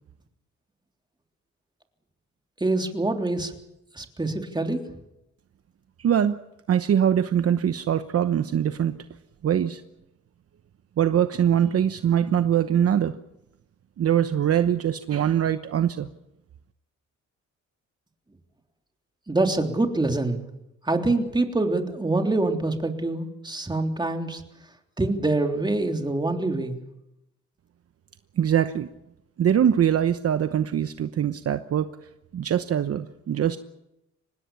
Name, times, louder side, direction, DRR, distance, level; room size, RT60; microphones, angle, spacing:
voice 1, 2.6-3.5 3.9-4.8 19.3-20.4 20.8-24.4 25.0-26.8, right 2 dB, 15° right, 4 dB, 3.4 m, -25 dB
voice 2, 6.0-6.4 6.7-9.0 9.4-9.8 11.0-13.1 14.0-16.1 28.4-28.9 29.4-31.9 32.3-33.6, right 9 dB, 50° right, 10 dB, 1.0 m, -22 dB
25.5 x 19.5 x 7.1 m, 0.87 s
cardioid pair, 90°, 30 cm